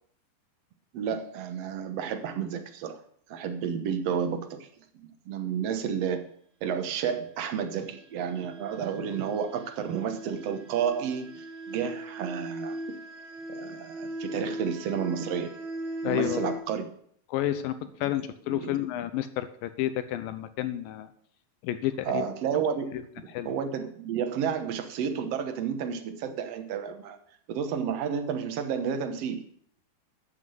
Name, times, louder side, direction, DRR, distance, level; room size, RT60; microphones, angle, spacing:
voice 1, 0.9-3.0 3.3-4.7 4.9-6.3 6.6-12.8 13.5-15.5 16.0-16.9 18.5-18.8 22.0-22.9 23.2-27.2 27.5-29.4, right 7 dB, 65° right, 7 dB, 1.6 m, -31 dB
sound 1, 7.7-16.6, right 1 dB, 85° right, 3.8 m, -38 dB
voice 2, 16.0-16.6 17.3-21.1 21.6-22.2 23.3-23.5, left 13 dB, 80° left, 11 dB, 2.2 m, -30 dB
12.5 x 6.1 x 7.7 m, 0.63 s
omnidirectional pair, 4.4 m